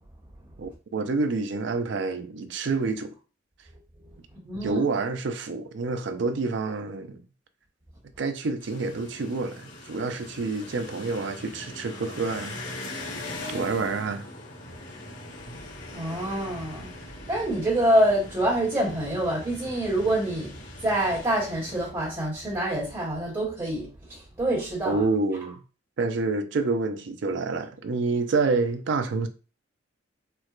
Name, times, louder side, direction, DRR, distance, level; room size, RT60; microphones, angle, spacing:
voice 1, 0.6-3.1 4.5-7.2 8.2-13.0 13.5-14.3 24.9-25.6 26.0-29.3, right 3 dB, 65° right, 0.4 m, -28 dB
voice 2, 4.4-4.8 15.9-25.0, right 1 dB, 25° right, 1.2 m, -26 dB
sound 1, 8.6-21.9, left 2 dB, 85° left, 1.6 m, -41 dB
4.4 x 2.1 x 2.4 m
head